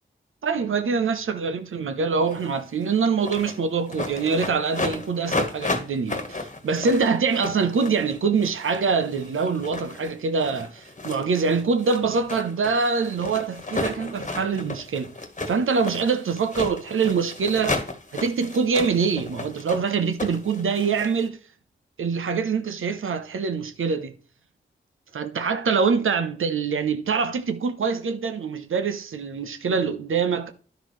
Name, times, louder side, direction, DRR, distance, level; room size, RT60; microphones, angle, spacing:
voice 1, 0.4-15.1 15.5-17.8 18.1-21.4 22.0-24.1 25.1-30.5, right 5 dB, 85° right, 0.7 m, -24 dB
sound 1, 2.3-2.6 2.8-3.6 3.9-21.3, left 2 dB, 35° left, 1.3 m, -33 dB
10.5 x 6.2 x 3.1 m
cardioid pair, 45°, 20 cm